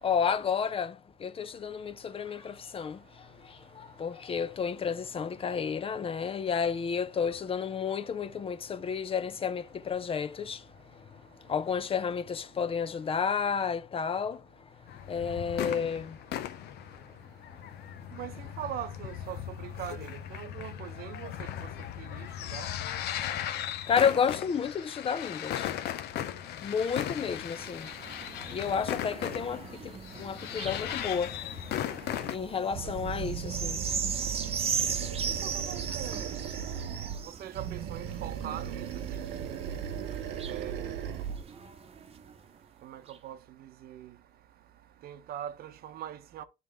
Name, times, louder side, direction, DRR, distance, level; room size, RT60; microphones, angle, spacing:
voice 1, 0.0-14.4 15.0-16.2 17.8-17.9 23.8-25.7 26.6-27.9 28.5-31.6 32.2-33.8, left 6 dB, 35° left, 0.6 m, -31 dB
sound 1, 14.9-32.4, left 11 dB, 75° left, 0.7 m, -37 dB
voice 2, 18.1-21.5 22.0-22.3 22.5-22.7 32.8-32.9 35.4-36.3 37.4-39.8 40.4-41.0 42.8-44.1 45.0-46.4, right 11 dB, 65° right, 0.8 m, -42 dB
sound 2, 26.6-42.4 43.1-43.2, right 6 dB, 35° right, 0.9 m, -39 dB
Animal, 32.7-37.2 37.5-41.4, right 8 dB, 85° right, 1.1 m, -37 dB
11.0 x 3.8 x 3.3 m
cardioid pair, 110°, 17 cm